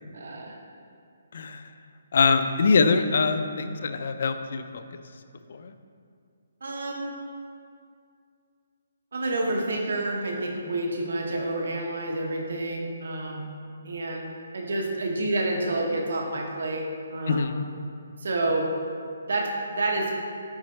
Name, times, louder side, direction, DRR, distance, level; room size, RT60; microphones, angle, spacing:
voice 1, 0.1-0.6 6.6-7.1 9.1-13.5 13.8-14.3 14.5-17.6 18.2-18.7 19.3-20.1, right 2 dB, 65° right, 1 dB, 1.0 m, -29 dB
voice 2, 1.3-1.7 2.1-4.8 5.5-5.7 17.3-17.6, left 4 dB, 50° left, 9 dB, 0.3 m, -23 dB
8.3 x 4.2 x 3.2 m, 2.3 s
hypercardioid pair, 175°, 0 cm